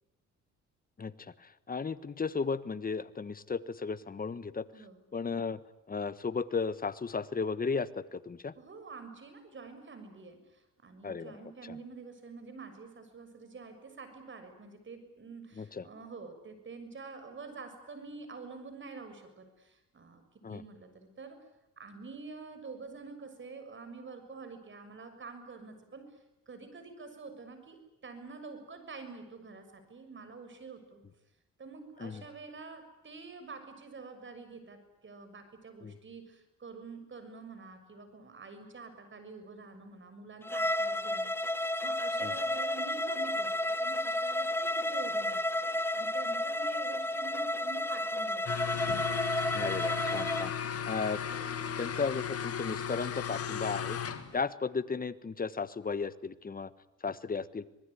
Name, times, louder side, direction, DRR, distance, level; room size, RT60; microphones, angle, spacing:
voice 1, 1.0-4.6 5.1-5.6 5.9-8.5 11.0-11.3 15.6-15.8 20.4-20.6 32.0-32.2 35.8-35.9 42.2-42.3 49.5-50.5 50.9-51.5 51.8-54.0 54.3-56.7 57.0-57.6, left 5 dB, 30° left, 15 dB, 1.4 m, -35 dB
voice 2, 4.7-5.0 8.5-21.4 21.8-26.1 26.5-31.0 31.6-48.7, right 4 dB, 40° right, 9 dB, 6.7 m, -47 dB
Bowed string instrument, 40.4-50.5, left 1 dB, 10° left, 1.1 m, -32 dB
sound 1, 48.5-54.4, left 8 dB, 50° left, 2.2 m, -36 dB
26.0 x 20.0 x 10.0 m, 0.92 s
cardioid pair, 90°, 30 cm